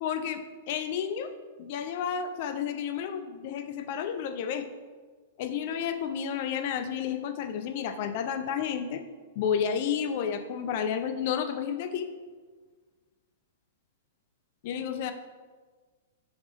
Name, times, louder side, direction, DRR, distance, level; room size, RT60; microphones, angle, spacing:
voice 1, 0.0-1.3 1.6-4.6 5.4-9.0 9.4-12.1 14.6-15.1, left 8 dB, 50° left, 8 dB, 0.3 m, -31 dB
3.9 x 3.4 x 3.3 m, 1.4 s
figure-of-eight pair, 105°, 0 cm